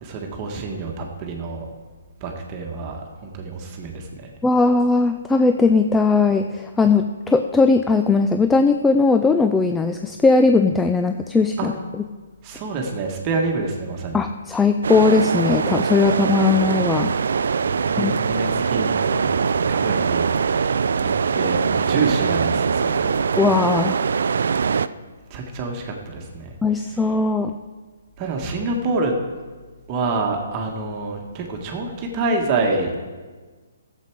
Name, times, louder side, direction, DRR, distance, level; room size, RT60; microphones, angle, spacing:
voice 1, 0.0-1.7 2.2-4.3 11.6-11.7 12.4-14.2 17.6-23.1 25.3-27.1 28.2-29.1 29.9-32.9, right 3 dB, 30° right, 1 dB, 1.4 m, -27 dB
voice 2, 4.4-11.7 14.1-17.1 18.0-18.1 23.4-24.0 26.6-27.5, left 4 dB, 10° left, 7 dB, 0.4 m, -18 dB
sound 1, 14.8-24.9, right 6 dB, 70° right, 0.3 m, -22 dB
12.5 x 7.4 x 4.6 m, 1.4 s
hypercardioid pair, 140°, 0 cm